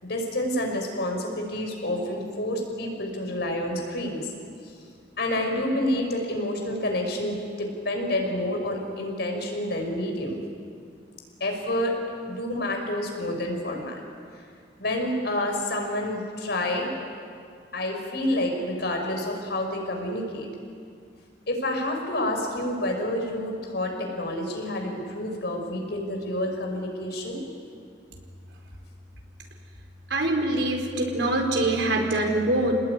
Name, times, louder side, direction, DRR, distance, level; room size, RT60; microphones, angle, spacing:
voice 1, 0.0-4.3 5.2-10.4 11.4-12.0 12.3-14.0 14.8-16.9 17.7-20.5 21.5-27.4, left 1 dB, 65° left, 2 dB, 5.5 m, -28 dB
voice 2, 30.1-32.8, right 1 dB, 85° right, 2 dB, 4.6 m, -24 dB
27.5 x 19.5 x 9.7 m, 2.3 s
head